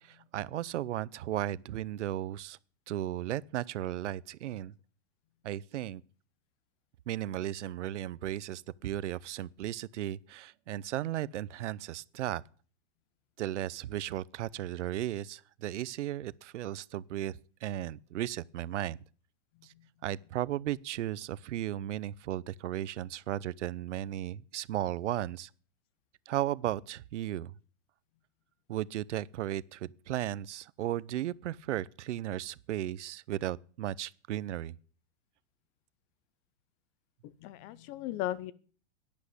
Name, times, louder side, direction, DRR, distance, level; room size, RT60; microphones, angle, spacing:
voice 1, 0.0-2.6 2.9-4.7 5.4-6.0 7.1-12.4 13.4-19.0 19.6-19.7 20.0-25.5 26.3-27.5 28.7-34.7, right 13 dB, 85° right, 0.8 m, -35 dB
voice 2, 37.2-38.5, left 13 dB, 25° left, 0.6 m, -36 dB
11.5 x 10.5 x 8.4 m
supercardioid pair, 165°, 35 cm